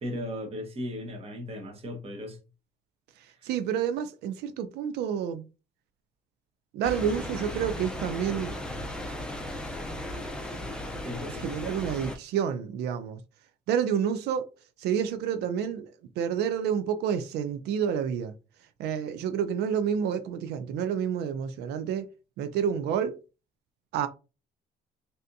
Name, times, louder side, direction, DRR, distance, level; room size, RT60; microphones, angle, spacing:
voice 1, 0.0-2.4 3.4-3.5 11.0-11.5, equal, 35° right, 1.0 m, -36 dB
voice 2, 3.4-5.4 6.7-8.6 11.4-13.2 13.7-14.4 14.8-18.3 18.8-22.1 22.4-23.2 23.9-24.1, right 8 dB, 80° right, 0.4 m, -29 dB
sound 1, 6.8-12.2, left 1 dB, 5° left, 0.5 m, -36 dB
3.3 x 2.7 x 2.6 m
cardioid pair, 110°, 17 cm